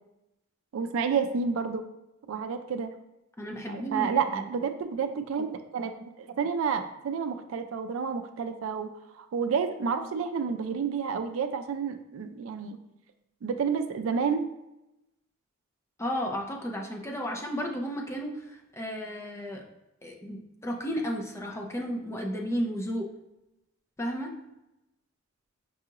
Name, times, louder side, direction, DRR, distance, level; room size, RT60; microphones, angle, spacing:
voice 1, 0.7-1.8 2.3-2.9 3.7-5.9 6.2-8.9 9.2-12.8 13.4-14.5, right 6 dB, 80° right, 8 dB, 0.4 m, -30 dB
voice 2, 3.4-4.5 16.0-19.6 20.0-23.1 24.0-24.3, equal, 15° left, 1 dB, 0.5 m, -33 dB
5.4 x 2.4 x 2.8 m, 0.93 s
head